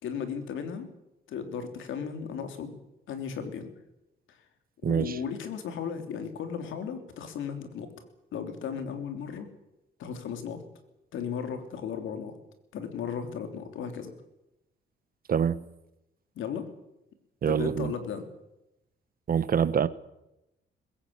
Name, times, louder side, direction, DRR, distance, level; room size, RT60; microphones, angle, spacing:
voice 1, 0.0-0.9 1.3-2.8 3.1-3.7 4.9-7.9 8.3-9.5 10.0-10.6 11.1-12.4 12.7-14.1 16.3-16.7 17.5-18.2, left 7 dB, 80° left, 7 dB, 3.3 m, -35 dB
voice 2, 4.8-5.2 15.3-15.6 17.4-17.9 19.3-19.9, right 7 dB, 45° right, 15 dB, 1.1 m, -25 dB
21.5 x 16.0 x 8.8 m, 0.91 s
cardioid pair, 90°, 20 cm